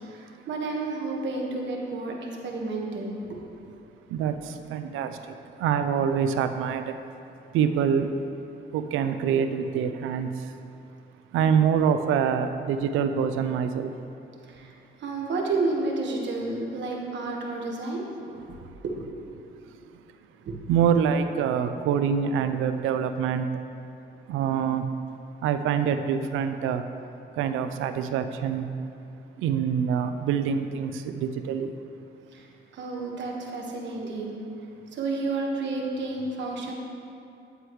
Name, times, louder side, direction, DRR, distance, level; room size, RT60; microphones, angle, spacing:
voice 1, 0.1-3.2 14.4-14.7 15.0-18.6 18.9-19.2 20.4-20.6 32.3-32.5 32.7-34.4 34.9-36.7, right 3 dB, 65° right, -1 dB, 1.5 m, -31 dB
voice 2, 4.7-5.1 5.6-6.8 7.5-8.1 8.7-10.3 11.3-13.9 20.7-23.5 24.3-24.8 25.4-26.8 27.4-28.7 29.4-31.7, right 7 dB, 90° right, 9 dB, 0.5 m, -25 dB
9.5 x 8.0 x 3.1 m, 2.8 s
cardioid pair, 90°, 20 cm